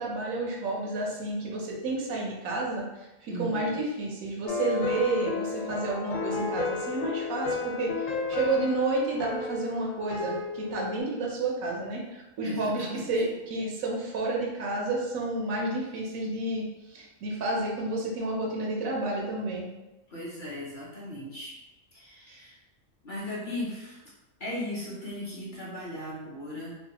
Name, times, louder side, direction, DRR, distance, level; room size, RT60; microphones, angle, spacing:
voice 1, 0.0-19.7 22.3-22.4, right 2 dB, 90° right, -1 dB, 1.1 m, -30 dB
voice 2, 3.3-3.7 12.4-13.1 20.1-21.5 21.9-22.5 23.0-24.0 24.4-26.8, left 1 dB, 45° left, -6 dB, 0.8 m, -37 dB
sound 1, 4.5-11.0, left 4 dB, 75° left, 1.0 m, -33 dB
3.1 x 2.3 x 2.8 m, 1.0 s
omnidirectional pair, 1.4 m